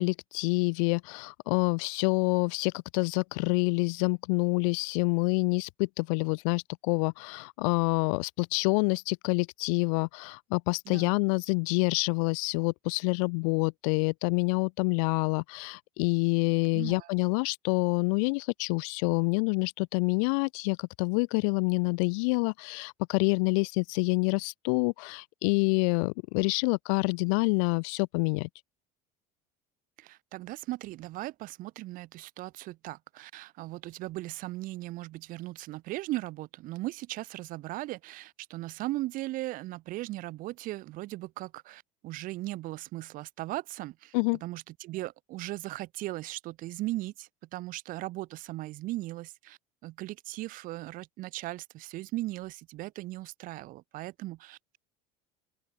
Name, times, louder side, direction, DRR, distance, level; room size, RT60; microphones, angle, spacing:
voice 1, 0.0-28.5 44.1-44.4, left 33 dB, 80° left, 0.4 m, -27 dB
voice 2, 16.7-17.1 30.0-44.1 44.4-54.8, right 18 dB, 55° right, 1.0 m, -38 dB
open air
supercardioid pair, 125°, 17 cm